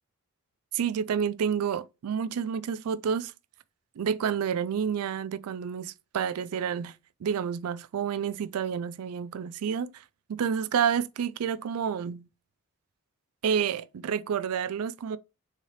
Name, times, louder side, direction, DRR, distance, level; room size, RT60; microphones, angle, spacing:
voice 1, 0.7-3.3 4.0-6.9 7.2-10.0 10.3-12.3 13.4-15.2, right 7 dB, 85° right, 0.4 m, -29 dB
3.7 x 3.2 x 4.1 m
head